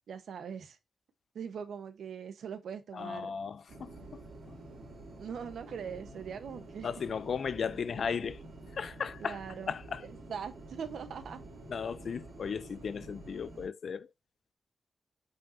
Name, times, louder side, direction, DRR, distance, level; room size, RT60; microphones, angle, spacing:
voice 1, 0.1-0.8 1.3-3.3 5.2-6.9 9.2-9.7 10.0-11.4, right 7 dB, 90° right, 1.1 m, -41 dB
voice 2, 2.9-3.9 6.8-8.4 8.7-9.4 9.7-10.0 11.7-14.1, left 6 dB, 55° left, 0.4 m, -36 dB
sound 1, 3.7-13.7, right 2 dB, 65° right, 3.4 m, -49 dB
8.6 x 5.5 x 2.7 m
wide cardioid pair, 175°, 0 cm